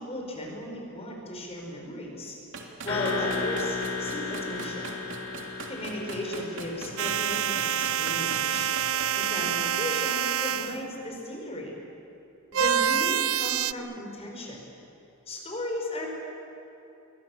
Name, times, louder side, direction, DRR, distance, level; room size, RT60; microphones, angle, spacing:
voice 1, 0.0-2.4 2.8-4.9 5.7-8.7 9.1-11.7 12.5-14.6 15.3-16.1, left 1 dB, 30° left, 0 dB, 5.5 m, -35 dB
sound 1, 2.5-11.0, right 3 dB, 60° right, 3.2 m, -41 dB
sound 2, 2.9-7.8, left 4 dB, 85° left, 4.2 m, -34 dB
sound 3, 7.0-10.8 12.5-13.7, right 9 dB, 80° right, 0.6 m, -27 dB
29.5 x 23.0 x 7.5 m, 3.0 s
head